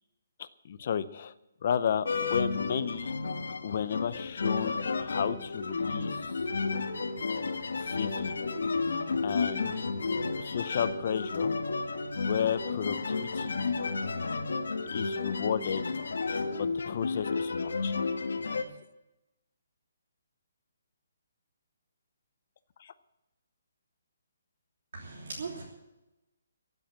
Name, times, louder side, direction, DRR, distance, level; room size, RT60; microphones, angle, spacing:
voice 1, 0.4-1.3 1.6-3.1 3.6-6.4 7.8-8.3 9.2-9.8 10.4-11.6 12.2-13.6 14.9-15.8 16.6-17.9 22.8-22.9, left 8 dB, 35° left, 14 dB, 0.6 m, -33 dB
sound 1, 2.0-18.6, left 4 dB, 75° left, 1.6 m, -32 dB
voice 2, 24.9-25.6, right 4 dB, 50° right, -3 dB, 3.2 m, -39 dB
15.5 x 8.0 x 8.9 m, 0.96 s
hypercardioid pair, 180°, 0 cm